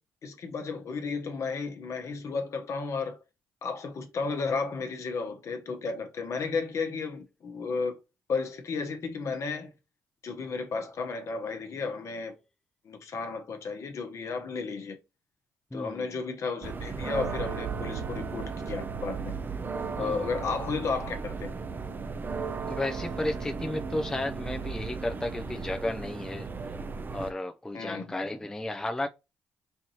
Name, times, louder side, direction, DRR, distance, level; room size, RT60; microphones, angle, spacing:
voice 1, 0.2-3.2 3.6-8.0 8.3-9.7 10.2-12.3 12.8-15.0 15.7-19.4 20.0-21.5 27.7-28.1, left 4 dB, 60° left, 1.0 m, -33 dB
voice 2, 15.7-16.1 20.0-20.2 22.7-26.5 27.1-29.1, left 1 dB, 10° left, 0.5 m, -33 dB
sound 1, 16.6-27.3, right 5 dB, 35° right, 0.6 m, -35 dB
4.4 x 2.6 x 2.9 m
supercardioid pair, 55°, 6 cm